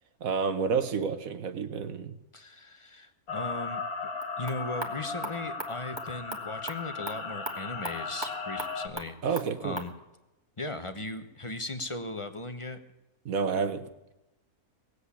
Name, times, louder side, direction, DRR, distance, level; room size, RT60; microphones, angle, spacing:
voice 1, 0.2-2.1 9.2-9.8 13.2-13.8, right 5 dB, 65° right, 10 dB, 1.5 m, -29 dB
voice 2, 2.3-3.8 4.4-9.9 10.6-12.8, left 2 dB, 25° left, 9 dB, 0.9 m, -38 dB
sound 1, 3.3-8.9, left 4 dB, 75° left, 2.1 m, -36 dB
sound 2, 4.1-9.9, right 2 dB, 15° right, 1.7 m, -41 dB
18.5 x 8.2 x 8.3 m, 0.97 s
omnidirectional pair, 1.6 m